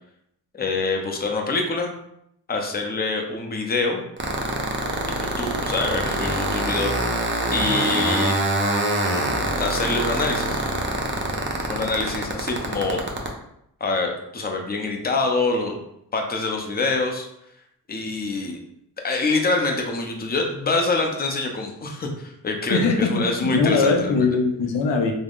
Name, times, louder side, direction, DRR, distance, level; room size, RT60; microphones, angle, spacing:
voice 1, 0.5-1.9 2.5-4.0 5.1-7.2 7.5-8.4 9.6-10.6 11.7-13.0 13.8-15.8 16.1-17.3 17.9-18.6 19.0-24.3, left 3 dB, 25° left, 2 dB, 0.6 m, -25 dB
sound 1, 4.2-13.3, right 2 dB, 30° right, 0.6 m, -24 dB
voice 2, 22.7-25.1, left 4 dB, 85° left, 3 dB, 0.5 m, -21 dB
3.4 x 2.0 x 2.4 m, 0.77 s
cardioid pair, 45°, 42 cm